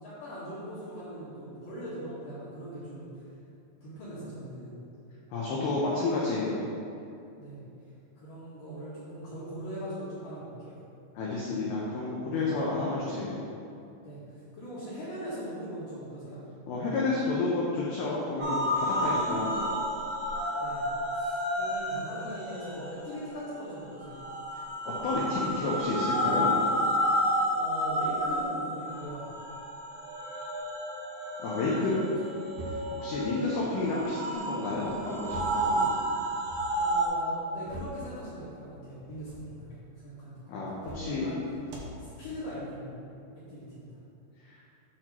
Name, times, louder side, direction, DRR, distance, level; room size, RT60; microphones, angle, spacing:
voice 1, 0.0-3.2 3.8-4.8 7.4-7.6 8.2-10.8 12.3-12.5 14.0-16.4 20.6-20.8 21.1-24.2 27.2-29.3 31.6-32.1 36.7-40.4 40.9-41.4 42.0-43.0 43.3-43.9, equal, 60° left, -11 dB, 2.5 m, -41 dB
voice 2, 5.3-6.7 11.2-13.5 16.7-19.7 25.0-26.7 31.4-31.9 33.0-35.9 40.5-41.3 44.5-44.6, left 3 dB, 85° left, -5 dB, 2.2 m, -30 dB
sound 1, 18.4-37.1, equal, 60° right, 2.2 m, -31 dB
sound 2, 32.5-33.1 34.6-35.7 36.0-36.7 37.3-38.1 39.0-39.5 40.7-41.2 41.6-42.0, equal, 80° right, 2.1 m, -44 dB
8.5 x 2.9 x 6.0 m, 2.6 s
omnidirectional pair, 5.6 m